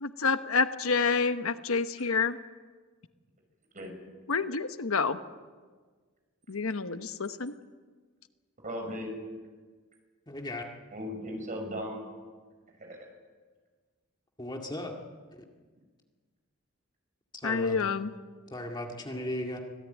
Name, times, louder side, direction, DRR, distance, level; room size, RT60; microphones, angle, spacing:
voice 1, 0.0-2.4 4.3-5.2 6.5-7.5 17.4-18.1, left 4 dB, 75° left, 10 dB, 1.0 m, -28 dB
voice 2, 8.6-9.1 10.9-12.0 12.7-13.1, equal, 35° right, 3 dB, 6.2 m, -37 dB
voice 3, 10.3-10.7 14.4-15.0 17.4-17.9 18.5-19.6, left 1 dB, 20° left, 2 dB, 2.1 m, -36 dB
24.5 x 17.0 x 9.2 m, 1.5 s
head